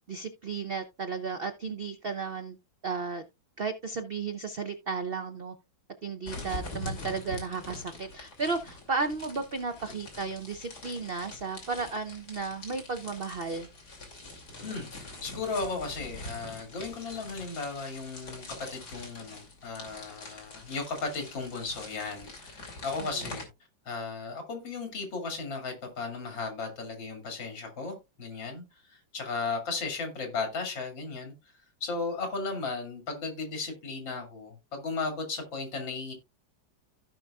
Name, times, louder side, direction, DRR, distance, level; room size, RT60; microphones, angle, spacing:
voice 1, 0.1-2.6 2.8-3.2 3.6-5.5 6.0-13.7 23.0-23.3, right 4 dB, 70° right, 0.5 m, -34 dB
sound 1, 6.3-23.4, left 2 dB, 55° left, 3.2 m, -44 dB
voice 2, 14.6-23.5 23.9-31.3 31.8-36.1, left 4 dB, 85° left, 3.1 m, -35 dB
15.5 x 5.4 x 2.3 m
omnidirectional pair, 2.0 m